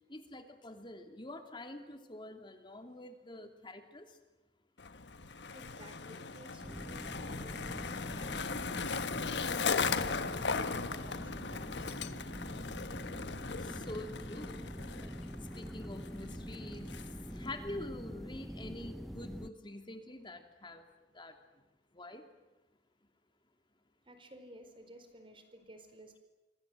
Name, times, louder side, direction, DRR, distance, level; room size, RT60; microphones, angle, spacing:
voice 1, 0.1-4.1 13.6-14.7 15.5-17.0 17.3-20.8 21.1-21.3 21.9-22.2, left 1 dB, 30° left, 6 dB, 2.8 m, -46 dB
Skateboard, 4.8-17.5, left 5 dB, 80° left, 1.3 m, -38 dB
voice 2, 5.5-7.7 8.1-8.5 9.3-12.0 24.1-26.2, right 1 dB, 30° right, 8 dB, 4.4 m, -55 dB
sound 1, 6.6-19.5, equal, ahead, 0.8 m, -45 dB
26.5 x 25.0 x 7.8 m, 1.1 s
head